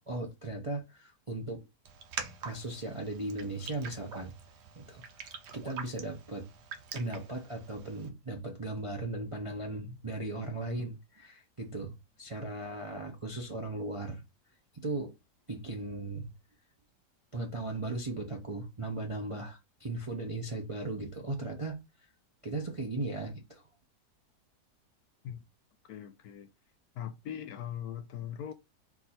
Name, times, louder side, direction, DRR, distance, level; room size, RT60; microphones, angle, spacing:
voice 1, 0.1-1.6 2.4-4.3 4.7-6.5 6.9-14.2 14.7-15.1 15.5-16.3 17.3-21.8 22.4-23.6, right 2 dB, 35° right, 0.5 m, -37 dB
Raindrop, 1.8-8.1, right 6 dB, 75° right, 1.4 m, -45 dB
voice 2, 25.8-26.5 27.0-28.5, left 10 dB, 70° left, 1.0 m, -40 dB
4.6 x 2.7 x 4.2 m
omnidirectional pair, 1.8 m